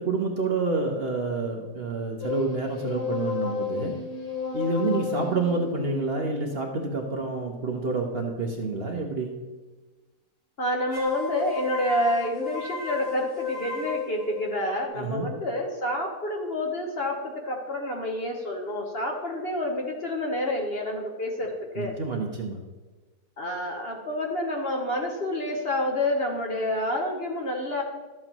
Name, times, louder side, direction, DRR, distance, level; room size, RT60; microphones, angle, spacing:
voice 1, 0.0-3.9 4.5-9.3 15.0-15.3 21.8-22.6, right 3 dB, 45° right, 2 dB, 1.0 m, -28 dB
sound 1, 2.2-7.6 10.9-14.8, left 5 dB, 25° left, 1.9 m, -34 dB
voice 2, 10.6-22.0 23.4-27.8, left 1 dB, 45° left, 1 dB, 1.2 m, -28 dB
12.5 x 7.8 x 3.0 m, 1.2 s
omnidirectional pair, 1.7 m